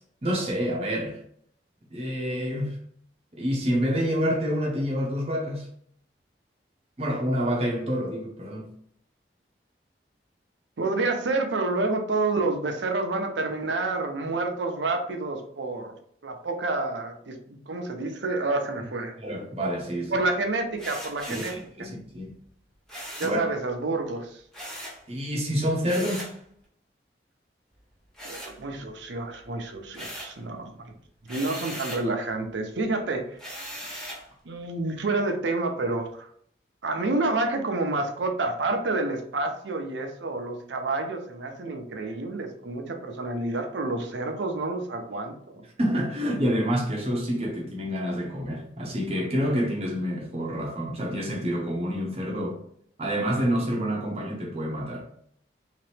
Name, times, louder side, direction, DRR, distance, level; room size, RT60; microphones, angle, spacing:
voice 1, 0.2-1.2 1.9-2.8 3.4-5.7 7.0-8.7 19.2-20.2 21.3-21.5 21.8-22.3 23.2-23.4 25.1-26.3 45.8-52.6 53.0-55.0, equal, 35° right, 0.7 m, -27 dB
voice 2, 10.8-16.0 16.2-19.2 20.1-21.9 23.2-24.4 28.2-30.9 31.3-33.4 34.5-36.3 36.8-45.6, right 2 dB, 85° right, 0.7 m, -29 dB
sound 1, 20.8-21.7 22.9-23.4 24.5-25.0 25.8-26.4 28.1-29.0 29.4-30.4 31.3-32.1 33.4-34.3, equal, 5° left, 0.9 m, -39 dB
3.2 x 2.9 x 3.3 m
head